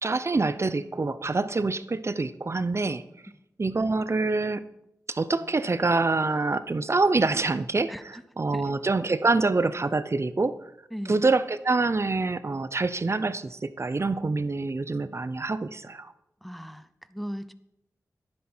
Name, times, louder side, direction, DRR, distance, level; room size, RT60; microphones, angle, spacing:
voice 1, 0.0-3.0 3.6-4.6 5.1-10.6 11.1-16.1, right 3 dB, 45° right, 14 dB, 0.7 m, -26 dB
voice 2, 16.4-17.5, equal, ahead, 13 dB, 0.7 m, -37 dB
11.0 x 10.5 x 4.4 m, 0.84 s
cardioid pair, 50°, 6 cm